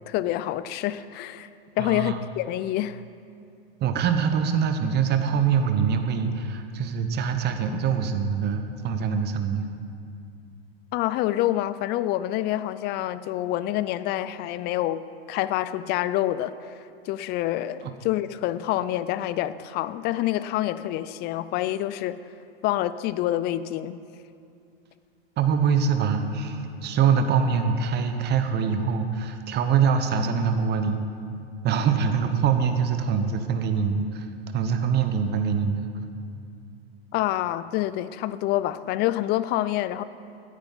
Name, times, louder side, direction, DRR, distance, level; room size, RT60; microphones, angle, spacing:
voice 1, 0.1-1.5 1.8-3.0 10.9-16.7 17.1-22.2 22.6-24.0 37.1-40.0, left 14 dB, 35° left, 15 dB, 0.4 m, -27 dB
voice 2, 1.8-2.2 3.8-9.7 17.8-17.9 25.4-31.0 31.6-34.3 34.5-35.9, right 6 dB, 35° right, 7 dB, 1.0 m, -24 dB
17.0 x 10.0 x 4.1 m, 2.5 s
hypercardioid pair, 100°, 31 cm